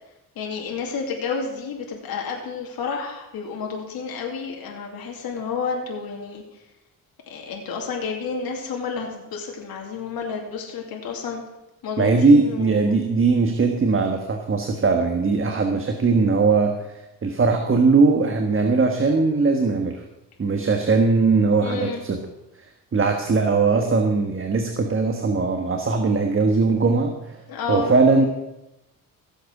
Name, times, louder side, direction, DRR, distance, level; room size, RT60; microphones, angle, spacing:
voice 1, 0.4-6.6 7.3-11.4 11.8-12.8 21.6-22.0 27.5-27.9, left 5 dB, 85° left, 0 dB, 2.6 m, -30 dB
voice 2, 12.0-16.7 17.2-20.0 20.4-22.2 22.9-27.4 27.7-28.2, right 4 dB, 35° right, 4 dB, 1.5 m, -20 dB
16.0 x 8.1 x 6.1 m, 0.94 s
cardioid pair, 100°, 35 cm